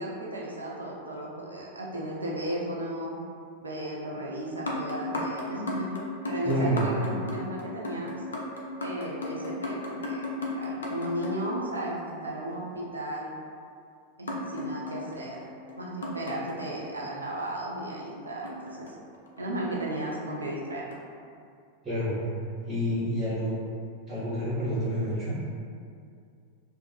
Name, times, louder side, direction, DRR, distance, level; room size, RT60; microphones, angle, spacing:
voice 1, 0.0-3.2 3.6-5.9 6.3-8.2 8.8-13.3 14.2-15.4 15.8-19.0 19.4-20.8, right 1 dB, 80° right, -4 dB, 0.4 m, -35 dB
sound 1, 4.5-12.2 14.3-17.2 18.4-19.5 20.1-20.4 20.9-21.0, left 1 dB, 70° left, 0.4 m, -36 dB
voice 2, 6.4-6.9 21.8-22.2 22.6-23.5 24.1-25.5, equal, 25° right, -13 dB, 1.0 m, -28 dB
2.5 x 2.4 x 2.4 m, 2.3 s
figure-of-eight pair, 90°, 0 cm